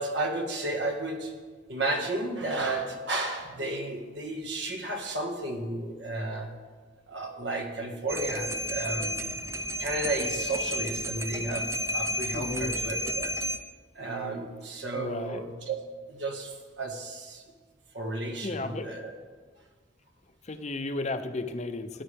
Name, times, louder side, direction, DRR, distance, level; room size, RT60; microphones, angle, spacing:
voice 1, 0.0-1.3 1.7-6.5 7.1-9.1 9.8-13.3 13.9-15.8 16.1-17.4 17.9-19.1, right 2 dB, 70° right, 3 dB, 1.8 m, -33 dB
sound 1, 8.1-13.6, equal, 15° right, 0.6 m, -32 dB
voice 2, 12.3-12.7 14.9-15.4 18.4-18.9 20.4-22.0, left 2 dB, 35° left, 8 dB, 0.7 m, -33 dB
13.5 x 10.0 x 3.5 m, 1.5 s
head